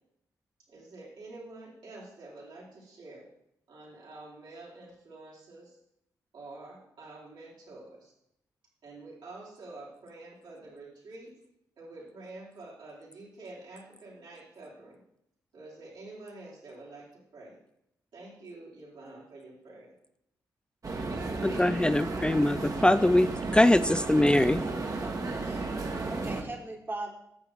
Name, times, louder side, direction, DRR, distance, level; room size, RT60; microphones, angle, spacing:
voice 1, 0.7-3.2 3.7-5.8 6.3-8.1 8.8-11.3 11.8-15.0 15.5-17.6 18.1-19.9, right 2 dB, 75° right, -6 dB, 3.6 m, -47 dB
sound 1, 20.8-26.4, right 3 dB, 45° right, 1.4 m, -33 dB
voice 2, 21.4-23.3 23.5-24.6, left 1 dB, 10° left, 12 dB, 0.4 m, -22 dB
voice 3, 25.4-27.1, right 2 dB, 25° right, 2 dB, 1.5 m, -40 dB
10.0 x 6.8 x 3.5 m, 0.77 s
supercardioid pair, 40°, 8 cm